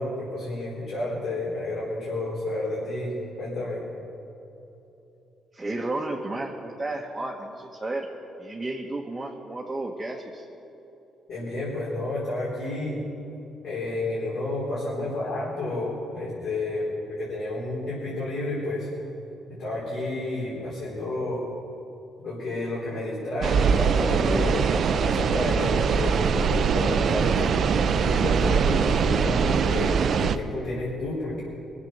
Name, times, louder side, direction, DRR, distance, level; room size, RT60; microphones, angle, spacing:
voice 1, 0.0-3.1 3.4-3.8 11.3-13.0 13.6-18.9 19.6-21.4 22.2-27.6 28.0-31.4, left 2 dB, 65° left, -8 dB, 4.2 m, -30 dB
voice 2, 5.5-8.1 8.4-10.5, right 2 dB, 15° right, -1 dB, 1.3 m, -32 dB
sound 1, 23.4-30.4, right 6 dB, 60° right, 0.6 m, -22 dB
20.5 x 7.5 x 6.7 m, 3.0 s
cardioid pair, 90°, 0 cm